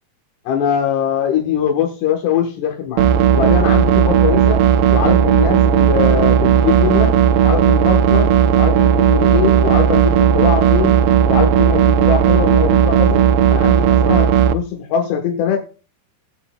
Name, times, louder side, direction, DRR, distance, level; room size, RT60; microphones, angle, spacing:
voice 1, 0.5-4.6 4.9-7.2 7.4-8.3 8.6-10.9 11.3-13.2 13.5-15.6, left 8 dB, 85° left, 1 dB, 3.3 m, -21 dB
sound 1, 3.0-14.5, right 8 dB, 80° right, 2.4 m, -14 dB
15.0 x 8.3 x 2.2 m, 0.34 s
omnidirectional pair, 4.6 m